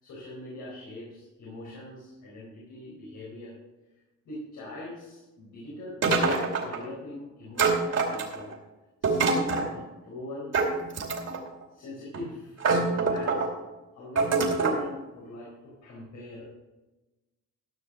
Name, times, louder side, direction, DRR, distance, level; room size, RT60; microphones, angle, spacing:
voice 1, 0.0-3.5 4.2-8.5 9.0-10.5 11.7-13.6 13.9-16.4, left 1 dB, 80° left, -5 dB, 4.3 m, -41 dB
sound 1, 6.0-6.8 7.6-8.5 9.0-9.7 10.5-11.5 12.1-12.2 12.6-13.5 14.2-14.8, right 4 dB, 55° right, 2.7 m, -25 dB
14.0 x 6.3 x 6.4 m, 1.1 s
cardioid pair, 90°, 30 cm